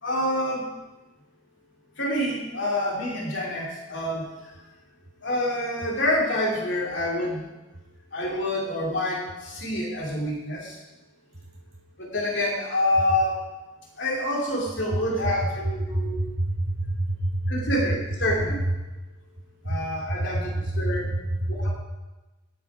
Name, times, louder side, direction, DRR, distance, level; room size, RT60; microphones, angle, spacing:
voice 1, 0.0-0.7 2.0-4.5 5.2-7.4 8.1-10.8 12.0-13.4 13.9-16.2 17.5-18.6 19.6-21.1 21.5-21.8, left 1 dB, 60° left, -3 dB, 3.0 m, -27 dB
voice 2, 15.9-17.5 19.6-19.8 20.8-21.8, right 1 dB, 50° right, -1 dB, 2.1 m, -27 dB
19.0 x 7.2 x 4.9 m, 1.1 s
head